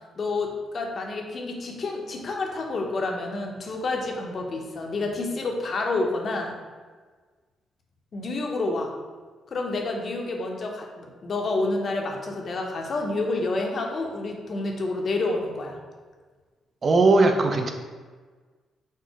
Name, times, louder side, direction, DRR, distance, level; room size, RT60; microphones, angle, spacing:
voice 1, 0.2-6.6 8.1-8.9 9.5-15.8, left 2 dB, 50° left, 1 dB, 0.7 m, -29 dB
voice 2, 16.8-17.7, right 3 dB, 45° right, 4 dB, 0.4 m, -19 dB
4.4 x 2.1 x 4.5 m, 1.4 s
cardioid pair, 80°, 0 cm